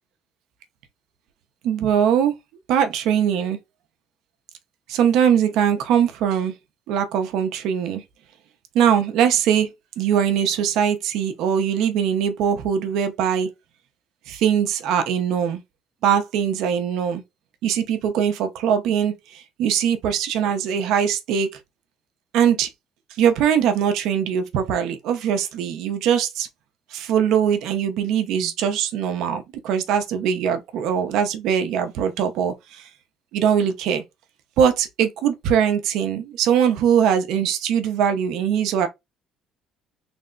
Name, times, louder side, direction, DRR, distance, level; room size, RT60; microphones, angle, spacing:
voice 1, 1.6-2.3 2.7-3.6 4.9-6.5 6.9-8.0 8.7-9.7 10.0-13.5 14.3-15.6 16.0-17.2 17.6-21.6 22.3-22.7 23.2-26.5 26.9-32.9 33.3-34.0 34.6-38.9, right 8 dB, 75° right, 0.8 m, -21 dB
3.4 x 2.1 x 3.8 m
cardioid pair, 110°, 0 cm